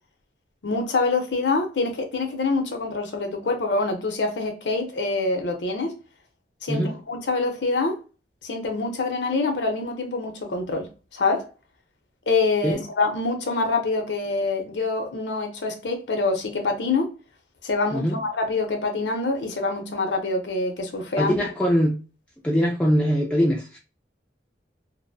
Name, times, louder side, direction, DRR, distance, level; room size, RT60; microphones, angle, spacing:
voice 1, 0.6-5.9 6.6-8.0 8.4-11.4 12.3-17.1 17.6-21.4, left 3 dB, 75° left, 0.6 m, -25 dB
voice 2, 21.2-22.0 22.4-23.8, equal, 5° left, 0.3 m, -22 dB
2.5 x 2.0 x 2.6 m
head